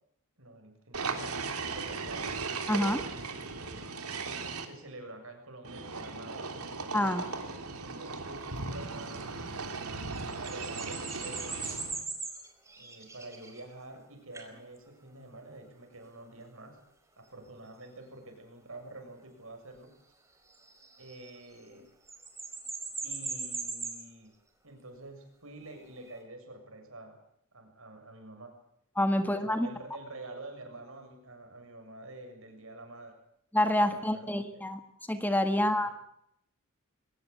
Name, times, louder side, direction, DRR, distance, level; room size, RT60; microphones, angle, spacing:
voice 1, 0.4-2.4 3.0-4.0 4.6-6.5 7.7-9.3 9.7-11.6 12.8-16.8 17.2-20.0 21.0-21.9 23.0-24.3 24.6-27.2 27.5-28.6 29.2-33.2 33.8-34.7 35.6-35.7, right 2 dB, 65° right, 5 dB, 7.3 m, -48 dB
sound 1, 0.9-4.6 5.6-12.0, right 4 dB, 90° right, 3.4 m, -37 dB
voice 2, 2.7-3.0 6.9-7.2 28.9-29.7 33.5-34.8 35.1-35.9, left 1 dB, 10° left, 8 dB, 1.6 m, -27 dB
sound 2, 8.4-8.6 10.0-14.0 14.3-14.6 16.0-16.1 20.5-21.8 22.1-24.0 25.8-26.2, right 4 dB, 15° right, 4.8 m, -40 dB
23.0 x 19.5 x 8.4 m, 0.73 s
head